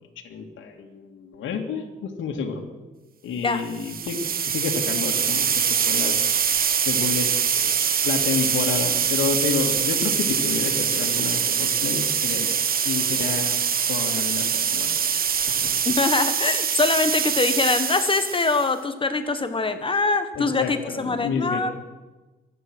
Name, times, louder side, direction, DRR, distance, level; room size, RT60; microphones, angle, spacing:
voice 1, 0.2-2.6 3.2-6.2 6.9-7.7 8.0-12.5 12.8-13.6 13.9-14.9 15.6-15.7 20.4-21.7, left 5 dB, 75° left, 2 dB, 2.3 m, -29 dB
sound 1, 3.7-18.7, right 7 dB, 50° right, 1.2 m, -24 dB
voice 2, 15.9-21.7, left 3 dB, 25° left, 9 dB, 1.4 m, -23 dB
24.0 x 9.3 x 6.3 m, 1.2 s
cardioid pair, 90°, 20 cm